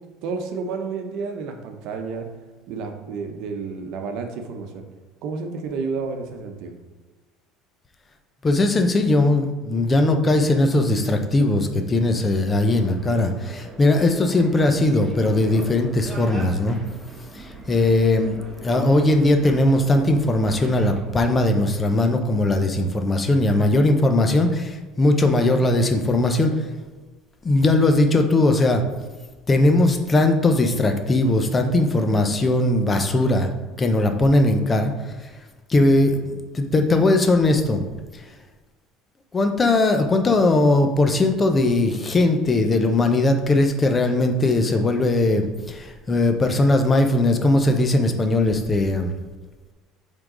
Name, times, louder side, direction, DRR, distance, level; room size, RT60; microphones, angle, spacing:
voice 1, 0.2-2.3 2.7-4.8 5.2-6.7, right 4 dB, 65° right, 5 dB, 0.9 m, -30 dB
voice 2, 8.4-16.8 17.3-26.5 27.4-28.8 29.5-33.5 33.8-35.1 35.7-37.8 39.3-49.1, left 2 dB, 20° left, 5 dB, 0.6 m, -19 dB
sound 1, 12.6-21.0, right 1 dB, 10° right, 1.2 m, -40 dB
7.8 x 3.8 x 3.8 m, 1.3 s
cardioid pair, 140°, 0 cm